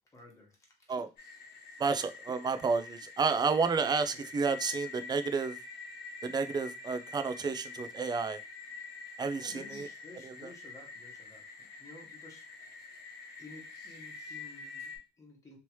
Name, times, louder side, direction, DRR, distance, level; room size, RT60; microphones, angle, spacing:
voice 1, 0.1-0.9 3.9-4.3 9.0-12.5 12.7-12.8 13.4-15.6, left 3 dB, 20° left, -1 dB, 1.3 m, -54 dB
sound 1, 1.2-15.0, left 4 dB, 70° left, 1.0 m, -46 dB
voice 2, 1.8-5.6 6.2-8.4 9.2-9.9 10.2-10.3, right 5 dB, 25° right, 9 dB, 0.4 m, -31 dB
3.1 x 2.9 x 3.0 m, 0.30 s
cardioid pair, 110°, 17 cm